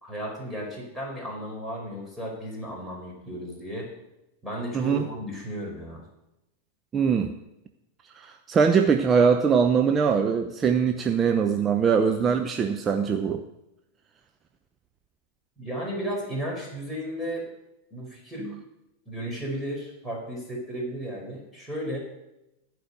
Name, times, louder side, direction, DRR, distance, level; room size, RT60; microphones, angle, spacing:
voice 1, 0.0-3.9 4.4-6.0 15.6-17.5 17.9-18.5 19.1-22.0, equal, 5° right, -2 dB, 4.6 m, -34 dB
voice 2, 4.7-5.1 6.9-7.4 8.1-13.4, right 6 dB, 25° right, 5 dB, 0.8 m, -22 dB
15.0 x 5.2 x 7.9 m, 0.91 s
figure-of-eight pair, 90°, 0 cm